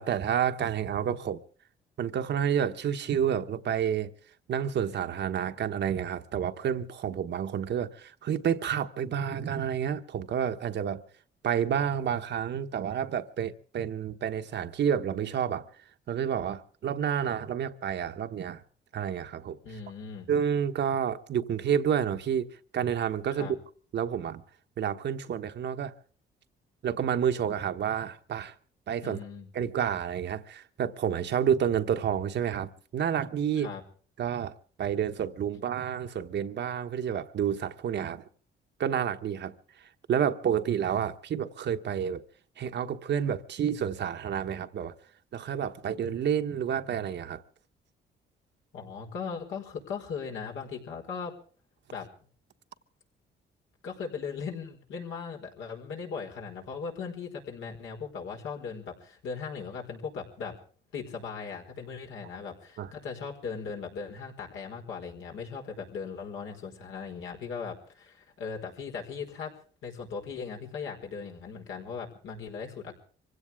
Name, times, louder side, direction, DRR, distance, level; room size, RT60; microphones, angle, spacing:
voice 1, 0.0-1.4 2.0-4.1 4.5-11.0 11.4-15.7 16.1-18.6 18.9-19.6 20.3-23.5 23.9-24.4 24.8-25.9 26.8-28.5 28.9-29.2 29.5-33.7 34.2-38.3 38.8-39.5 40.1-42.2 42.6-44.9 45.3-47.4 62.8-62.9, right 8 dB, 60° right, 1.2 m, -29 dB
voice 2, 19.6-20.3 23.3-23.5 29.0-29.5 33.6-33.8 48.7-51.3 51.9-52.1 53.8-60.6 60.9-69.5 69.8-73.0, left 5 dB, 80° left, 4.8 m, -38 dB
25.0 x 16.5 x 3.6 m
cardioid pair, 90°, 20 cm